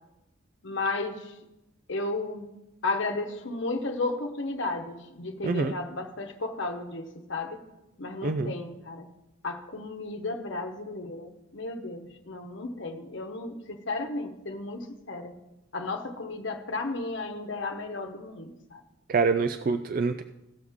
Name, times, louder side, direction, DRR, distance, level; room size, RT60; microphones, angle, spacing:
voice 1, 0.6-1.3 1.9-2.5 2.8-7.6 8.0-9.1 9.4-15.4 15.7-18.8, left 2 dB, 60° left, 4 dB, 1.0 m, -34 dB
voice 2, 8.2-8.5 19.1-20.2, right 4 dB, 40° right, 9 dB, 0.3 m, -26 dB
16.5 x 6.3 x 3.6 m, 0.95 s
head